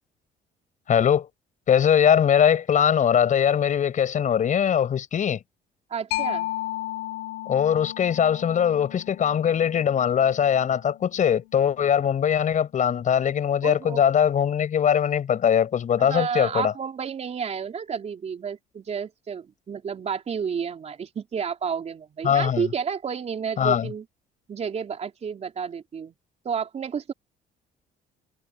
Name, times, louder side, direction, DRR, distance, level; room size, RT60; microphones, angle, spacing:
voice 1, 0.9-1.3 1.7-5.4 7.5-16.7 22.2-22.7 23.6-23.9, left 8 dB, 50° left, 6.3 m, -21 dB
voice 2, 5.9-6.5 13.6-14.0 16.0-24.1 24.5-26.1 26.4-27.1, right 6 dB, 40° right, 4.0 m, -31 dB
Mallet percussion, 6.1-13.4, left 15 dB, 80° left, 5.4 m, -36 dB
cardioid pair, 110°, 17 cm